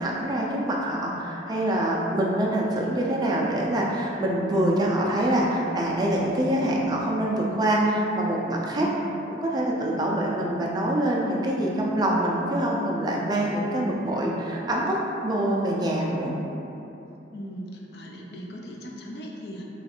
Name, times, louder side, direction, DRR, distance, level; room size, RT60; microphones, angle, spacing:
voice 1, 0.0-8.9 9.4-16.3, right 1 dB, 20° right, -3 dB, 0.4 m, -25 dB
voice 2, 8.8-9.1 17.3-19.6, equal, 60° left, -2 dB, 0.5 m, -38 dB
3.1 x 2.4 x 4.3 m, 3.0 s
head